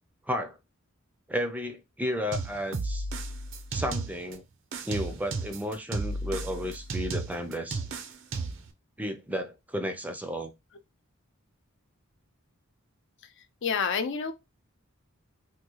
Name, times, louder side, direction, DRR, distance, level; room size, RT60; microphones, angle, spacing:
voice 1, 0.3-0.6 1.3-3.1 3.7-4.4 4.8-7.8 9.0-10.5, equal, 5° right, 0.5 m, -33 dB
sound 1, 2.3-4.3 4.7-8.7, right 3 dB, 65° right, 0.6 m, -34 dB
voice 2, 13.6-14.3, left 6 dB, 60° left, 0.5 m, -28 dB
3.5 x 2.3 x 3.0 m
head